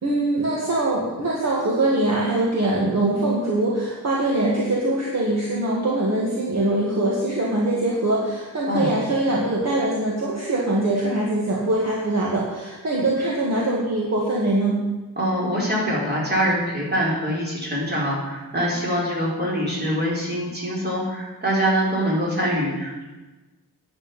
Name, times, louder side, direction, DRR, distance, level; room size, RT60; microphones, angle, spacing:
voice 1, 0.0-14.8, right 2 dB, 45° right, -4 dB, 2.0 m, -23 dB
voice 2, 15.2-23.0, equal, 30° right, -4 dB, 4.1 m, -24 dB
9.9 x 6.5 x 8.7 m, 1.2 s
wide cardioid pair, 150°, 35 cm